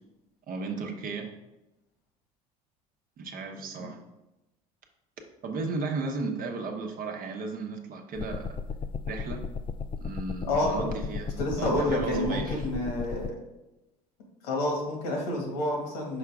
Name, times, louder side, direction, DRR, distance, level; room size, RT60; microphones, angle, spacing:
voice 1, 0.5-1.3 3.2-4.0 5.4-8.6 9.1-9.4 10.0-12.7, right 3 dB, 45° right, 3 dB, 1.0 m, -34 dB
sound 1, 8.1-13.3, left 5 dB, 25° left, 0.3 m, -35 dB
voice 2, 10.5-10.8 11.4-13.3 14.4-16.2, left 1 dB, 75° left, 0 dB, 1.9 m, -29 dB
5.9 x 4.7 x 3.6 m, 0.98 s
hypercardioid pair, 70°, 20 cm